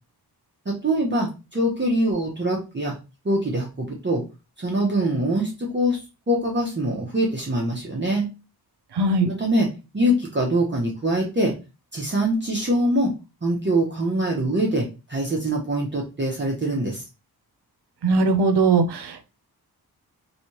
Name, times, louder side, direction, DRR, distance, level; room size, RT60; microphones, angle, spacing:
voice 1, 0.7-3.0 3.2-4.2 4.6-8.3 9.2-11.6 11.9-13.1 13.4-17.0, right 1 dB, 30° right, -2 dB, 0.7 m, -24 dB
voice 2, 8.9-9.3 18.0-19.3, right 3 dB, 90° right, 7 dB, 0.7 m, -20 dB
3.2 x 2.7 x 2.9 m, 0.28 s
wide cardioid pair, 140°, 39 cm